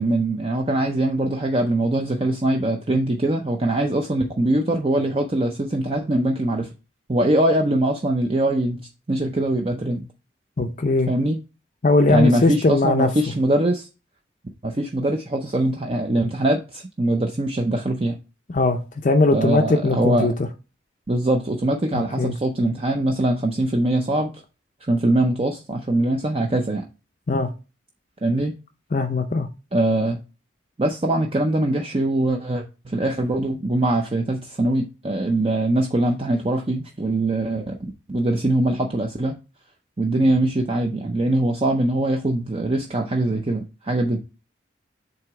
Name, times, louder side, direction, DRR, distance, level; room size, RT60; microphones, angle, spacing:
voice 1, 0.0-6.7 7.1-10.1 11.1-11.4 12.1-13.9 14.6-18.2 19.3-20.3 21.1-24.3 24.9-26.9 28.2-28.5 29.7-30.2 30.8-37.8 38.1-39.3 40.0-44.2, right 1 dB, 30° right, 0.5 m, -22 dB
voice 2, 10.6-11.1 11.8-13.1 18.5-20.3 21.9-22.3 27.3-27.5 28.9-29.5, left 3 dB, 40° left, 0.5 m, -20 dB
7.6 x 2.9 x 4.7 m
head